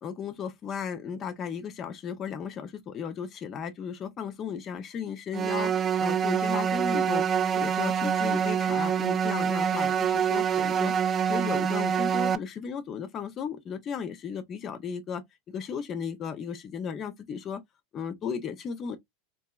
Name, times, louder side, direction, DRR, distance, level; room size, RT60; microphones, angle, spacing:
voice 1, 0.0-11.0 11.3-17.6 17.9-19.0, left 7 dB, 40° left, 0.5 m, -35 dB
sound 1, 5.3-12.4, right 7 dB, 30° right, 0.3 m, -26 dB
2.9 x 2.6 x 2.2 m
hypercardioid pair, 105°, 0 cm